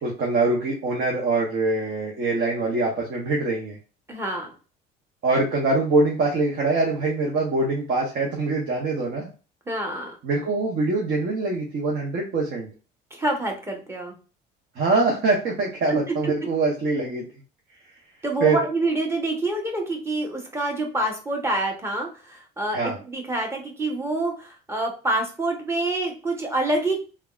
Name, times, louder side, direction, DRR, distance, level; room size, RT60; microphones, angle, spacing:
voice 1, 0.0-3.8 5.2-9.3 10.2-12.7 14.8-17.2 18.4-18.6 22.7-23.0, right 3 dB, 55° right, -1 dB, 0.9 m, -23 dB
voice 2, 4.1-4.5 9.7-10.2 13.1-14.2 15.9-16.3 18.2-27.0, right 2 dB, 15° right, 1 dB, 1.0 m, -27 dB
3.3 x 2.3 x 2.4 m, 0.35 s
supercardioid pair, 90°, 20 cm